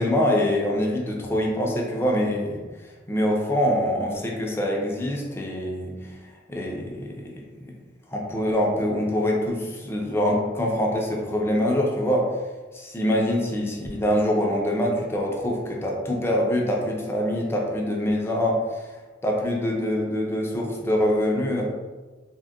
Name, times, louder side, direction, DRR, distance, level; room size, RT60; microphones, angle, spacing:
voice 1, 0.0-2.6 3.1-6.1 6.5-7.3 7.6-7.7 8.1-12.3 12.7-18.9 19.2-21.6, left 1 dB, 15° left, -2 dB, 0.4 m, -24 dB
3.6 x 2.1 x 2.3 m, 1.3 s
head